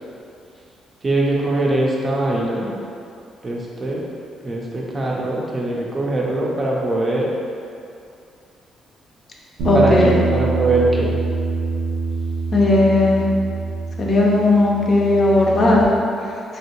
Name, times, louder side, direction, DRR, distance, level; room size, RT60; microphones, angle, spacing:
voice 1, 1.0-2.7 3.4-4.0 4.4-7.3 9.7-11.2, right 2 dB, 30° right, -3 dB, 0.5 m, -21 dB
voice 2, 9.6-10.2 12.5-13.2 14.0-15.8, left 2 dB, 45° left, -3 dB, 0.5 m, -16 dB
Bass guitar, 9.6-15.8, right 4 dB, 85° right, 0.5 m, -25 dB
3.0 x 2.7 x 2.9 m, 2.5 s
cardioid pair, 90°, 0 cm